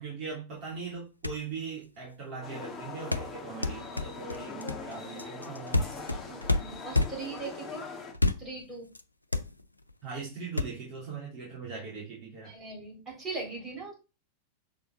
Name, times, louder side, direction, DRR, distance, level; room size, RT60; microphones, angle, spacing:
voice 1, 0.0-6.4 10.0-12.5, right 5 dB, 35° right, 2.8 m, -40 dB
sound 1, 0.9-1.0 1.2-1.5 3.1-7.4 8.1-8.6 8.9-9.0 9.3-9.9 10.6-10.7, left 2 dB, 85° left, 0.4 m, -29 dB
sound 2, 2.4-8.1, left 4 dB, 10° left, 1.7 m, -42 dB
voice 2, 6.3-7.8 8.4-8.9 12.4-13.9, right 4 dB, 20° right, 3.9 m, -40 dB
6.7 x 4.4 x 3.8 m
figure-of-eight pair, 90°, 0 cm